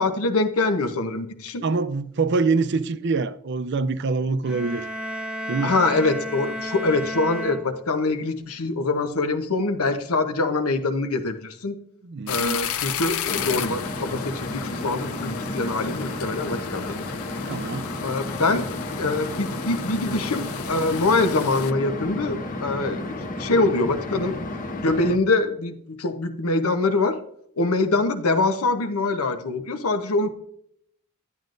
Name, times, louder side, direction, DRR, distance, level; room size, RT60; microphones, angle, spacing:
voice 1, 0.0-1.6 5.6-11.7 12.3-17.0 18.0-18.6 19.0-23.0 23.4-24.4 24.8-27.2 27.6-30.3, left 3 dB, 90° left, 0.9 m, -24 dB
voice 2, 1.6-4.9 5.5-5.8 12.0-12.6 17.5-17.9, right 4 dB, 55° right, 0.5 m, -25 dB
sound 1, 4.4-8.3, equal, 5° right, 0.6 m, -33 dB
sound 2, 12.3-21.7, left 9 dB, 75° left, 0.5 m, -34 dB
sound 3, 13.3-25.2, left 1 dB, 40° left, 0.9 m, -32 dB
11.0 x 9.2 x 2.6 m
head